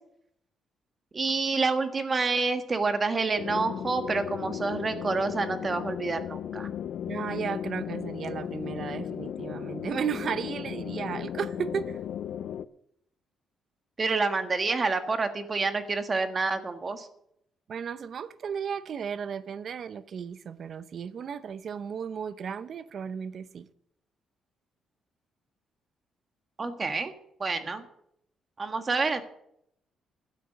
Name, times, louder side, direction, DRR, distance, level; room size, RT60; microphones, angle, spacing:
voice 1, 1.1-6.7 14.0-17.1 26.6-27.1 27.4-27.8 28.6-29.2, right 4 dB, 35° right, 1.5 m, -28 dB
sound 1, 3.4-12.7, left 9 dB, 70° left, 0.5 m, -35 dB
voice 2, 7.1-12.0 17.7-23.7, right 7 dB, 55° right, 0.7 m, -34 dB
12.5 x 9.3 x 6.4 m
cardioid pair, 90°, 0 cm